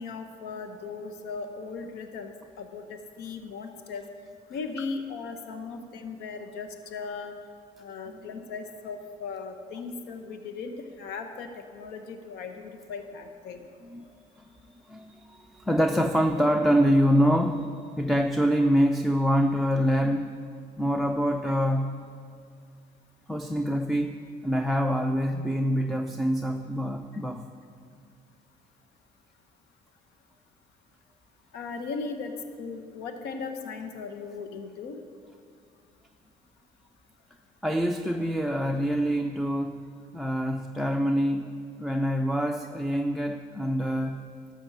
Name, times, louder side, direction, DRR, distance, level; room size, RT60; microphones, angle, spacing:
voice 1, 0.0-4.0 4.5-7.3 7.8-11.5 11.7-13.7 31.5-32.3 32.6-35.0, left 4 dB, 85° left, 7 dB, 0.9 m, -37 dB
voice 2, 14.3-17.7 18.0-20.3 20.8-22.0 23.3-27.5 37.6-39.8 40.1-41.5 41.8-44.3, equal, ahead, 6 dB, 0.5 m, -25 dB
12.5 x 6.0 x 7.2 m, 2.3 s
cardioid pair, 110°, 17 cm